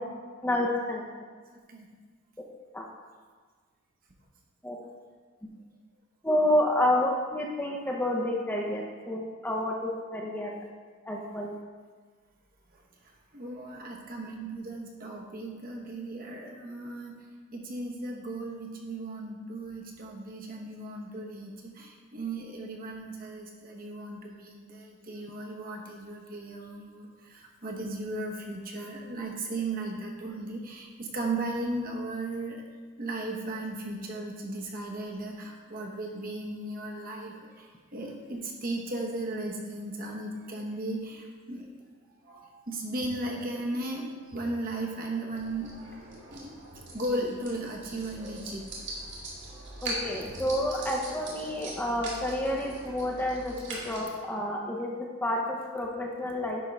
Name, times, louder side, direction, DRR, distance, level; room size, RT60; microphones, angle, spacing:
voice 1, 0.4-1.0 2.7-2.9 4.6-4.8 6.2-10.6 11.1-11.5 49.8-56.6, left 1 dB, 10° left, -1 dB, 0.7 m, -29 dB
voice 2, 13.3-17.2 17.5-32.6 33.0-41.7 42.2-45.7 46.3-48.6, right 2 dB, 45° right, 0 dB, 1.1 m, -36 dB
sound 1, 45.3-54.0, right 1 dB, 60° right, 2.3 m, -41 dB
10.5 x 3.6 x 5.3 m, 1.5 s
head